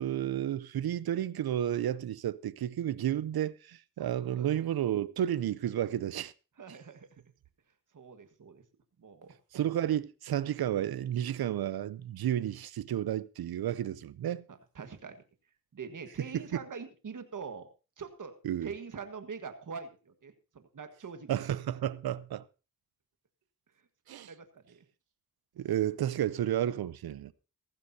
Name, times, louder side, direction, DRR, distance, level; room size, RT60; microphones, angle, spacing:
voice 1, 0.0-6.3 9.5-14.4 16.3-16.5 18.4-18.7 21.3-22.4 24.1-24.3 25.6-27.3, right 11 dB, 90° right, 0.6 m, -32 dB
voice 2, 4.0-4.5 6.6-7.1 7.9-8.6 9.0-9.4 14.5-15.2 15.7-17.7 18.0-18.4 18.6-21.4 21.8-21.9 24.3-24.8, right 5 dB, 60° right, 1.6 m, -44 dB
16.0 x 15.0 x 2.8 m
cardioid pair, 75°, 36 cm